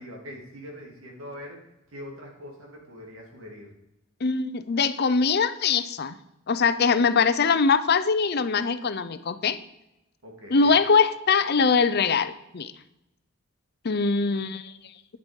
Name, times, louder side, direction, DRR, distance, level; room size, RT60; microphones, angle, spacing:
voice 1, 0.0-3.7 10.2-10.8, equal, 80° right, -1 dB, 3.0 m, -42 dB
voice 2, 4.2-6.1 6.5-9.6 10.5-12.7 13.8-14.7, left 5 dB, 50° left, 13 dB, 0.6 m, -22 dB
9.7 x 8.2 x 5.3 m, 0.91 s
head